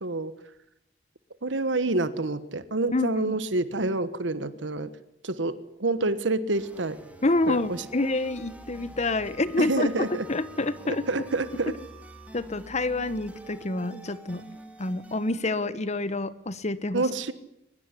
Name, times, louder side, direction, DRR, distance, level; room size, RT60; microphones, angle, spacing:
voice 1, 0.0-0.3 1.4-4.9 5.2-7.0 7.5-7.6 9.6-10.2 11.1-11.7 16.9-17.3, right 2 dB, 90° right, 13 dB, 1.4 m, -27 dB
voice 2, 2.9-3.3 7.2-11.1 12.3-14.4 14.8-17.1, left 2 dB, 40° left, 15 dB, 1.2 m, -28 dB
sound 1, 6.5-15.7, right 1 dB, 10° right, 3.2 m, -47 dB
23.0 x 21.0 x 9.9 m, 0.83 s
head